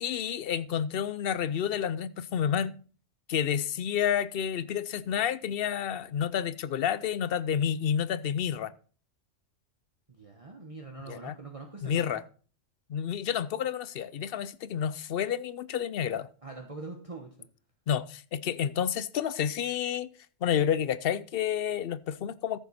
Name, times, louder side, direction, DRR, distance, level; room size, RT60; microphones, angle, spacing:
voice 1, 0.0-2.7 3.3-8.7 11.1-11.4 11.8-12.2 12.9-16.3 17.9-20.1 20.4-22.6, left 9 dB, 60° left, 0.7 m, -30 dB
voice 2, 10.1-12.2 16.4-17.5, right 3 dB, 30° right, 1.2 m, -43 dB
14.0 x 7.0 x 4.2 m
omnidirectional pair, 1.3 m